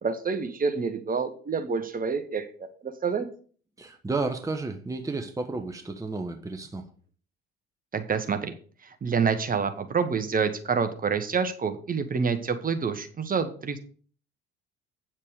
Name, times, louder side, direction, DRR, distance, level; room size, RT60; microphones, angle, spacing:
voice 1, 0.0-3.3 7.9-8.5 8.8-13.8, right 5 dB, 30° right, 8 dB, 1.4 m, -28 dB
voice 2, 3.8-6.9, right 3 dB, 10° right, 5 dB, 1.2 m, -32 dB
8.9 x 7.4 x 4.9 m, 0.43 s
figure-of-eight pair, 60°, 30 cm